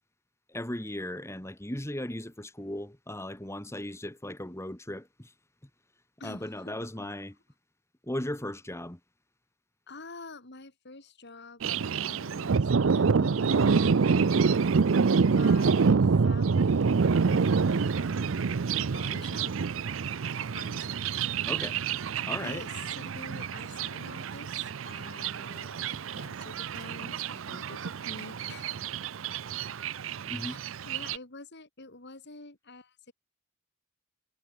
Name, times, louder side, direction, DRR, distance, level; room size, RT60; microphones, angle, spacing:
voice 1, 0.5-5.3 6.2-7.3 8.0-9.0 21.5-21.8 22.3-22.7 30.2-30.6, left 1 dB, 15° left, 2.5 m, -37 dB
voice 2, 6.2-6.9 9.9-14.6 14.9-18.5 18.8-19.5 20.3-20.9 22.4-28.7 30.4-30.6 30.8-33.1, left 2 dB, 60° left, 4.0 m, -47 dB
Thunder, 11.6-31.2, right 5 dB, 70° right, 0.5 m, -27 dB
head